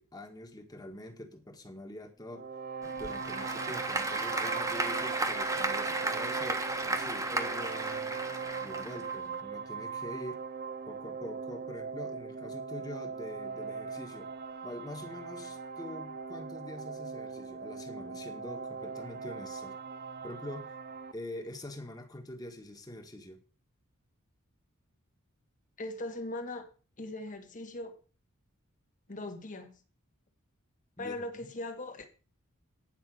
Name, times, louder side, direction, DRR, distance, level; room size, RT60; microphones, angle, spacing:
voice 1, 0.0-2.4 3.0-8.2 8.6-10.4 10.9-14.3 14.6-19.7 20.2-20.7 21.1-23.4 31.0-31.1, left 1 dB, 15° left, 1.7 m, -44 dB
sound 1, 2.3-21.1, right 5 dB, 45° right, 0.7 m, -40 dB
Applause / Crowd, 2.8-9.4, right 2 dB, 15° right, 1.3 m, -34 dB
voice 2, 25.8-26.7 27.0-28.0 29.1-29.7 31.0-32.1, left 2 dB, 35° left, 1.7 m, -39 dB
10.5 x 5.6 x 7.6 m
head